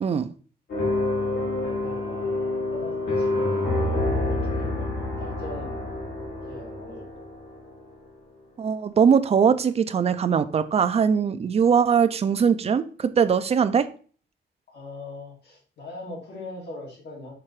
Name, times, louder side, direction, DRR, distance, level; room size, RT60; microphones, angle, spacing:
sound 1, 0.7-7.8, left 2 dB, 85° left, 2.2 m, -27 dB
voice 1, 1.5-6.0 6.5-7.3 14.7-17.3, left 2 dB, 65° left, 2.8 m, -41 dB
voice 2, 8.6-13.9, right 7 dB, 35° right, 0.4 m, -21 dB
5.9 x 3.7 x 4.7 m
wide cardioid pair, 155°, 18 cm